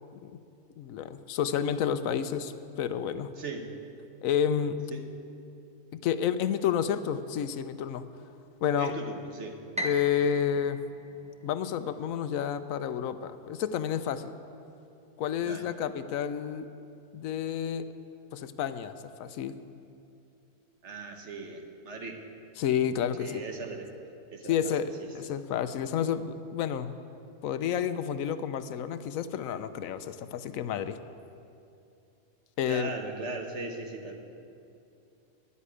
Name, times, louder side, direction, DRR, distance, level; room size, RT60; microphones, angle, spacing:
voice 1, 0.8-2.5 2.8-3.3 4.2-4.8 5.9-8.0 8.6-8.9 9.8-10.8 11.4-14.3 15.2-16.7 17.1-17.9 18.3-19.5 22.6-23.4 24.5-26.9 27.4-31.0 32.6-32.9, left 8 dB, 85° left, 12 dB, 1.0 m, -30 dB
voice 2, 3.4-3.8 4.9-5.1 8.8-9.6 15.4-15.7 20.8-22.2 23.2-23.9 24.3-24.7 25.0-25.1 32.7-34.2, right 3 dB, 60° right, 4 dB, 1.4 m, -38 dB
Piano, 9.8-12.0, equal, 5° right, 0.6 m, -38 dB
11.0 x 8.4 x 9.6 m, 2.6 s
omnidirectional pair, 1.4 m